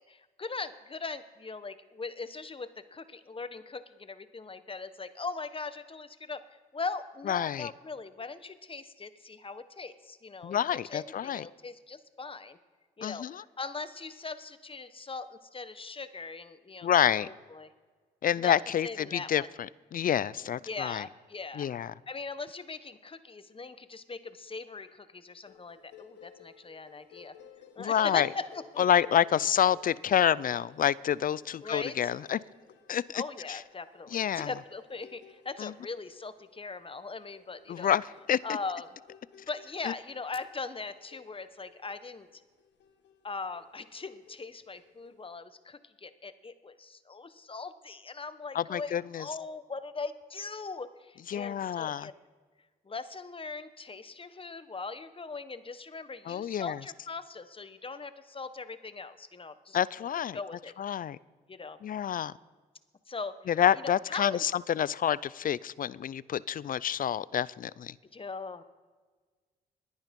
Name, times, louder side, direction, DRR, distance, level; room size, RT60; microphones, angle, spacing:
voice 1, 0.1-6.4 6.7-12.6 13.0-16.9 17.1-17.7 18.4-18.6 18.8-19.5 20.6-21.7 22.1-27.3 27.7-28.8 31.6-32.1 33.1-37.9 38.4-38.9 39.5-42.4 43.2-52.1 52.8-59.8 60.3-60.7 61.5-61.8 63.1-63.4 63.8-64.4 68.1-68.6, left 4 dB, 30° left, 1.1 m, -40 dB
voice 2, 7.3-7.7 10.4-11.4 13.0-13.4 16.8-17.3 18.2-21.0 21.6-21.9 27.8-28.3 28.8-32.4 32.9-33.2 33.5-33.6 34.1-34.5 35.6-35.7 37.7-38.6 39.8-39.9 48.5-49.3 51.3-52.1 56.3-56.8 59.7-60.4 60.8-61.2 61.8-62.3 63.5-67.9, left 9 dB, 50° left, 0.5 m, -28 dB
sound 1, 25.4-45.3, left 7 dB, 75° left, 1.6 m, -57 dB
20.5 x 8.8 x 5.3 m
supercardioid pair, 60°, 18 cm